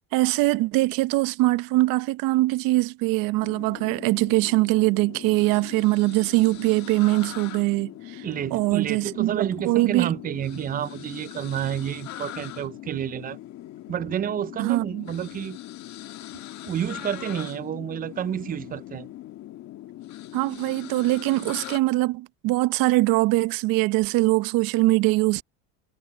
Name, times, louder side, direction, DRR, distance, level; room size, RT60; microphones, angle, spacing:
voice 1, 0.1-8.2 8.5-10.1 14.6-15.0 20.3-25.4, right 20 dB, 65° right, 0.9 m, -22 dB
sound 1, 3.4-21.8, left 14 dB, 50° left, 1.5 m, -41 dB
voice 2, 8.2-13.4 13.9-15.6 16.7-19.1, right 9 dB, 25° right, 0.4 m, -30 dB
cardioid pair, 125°, 37 cm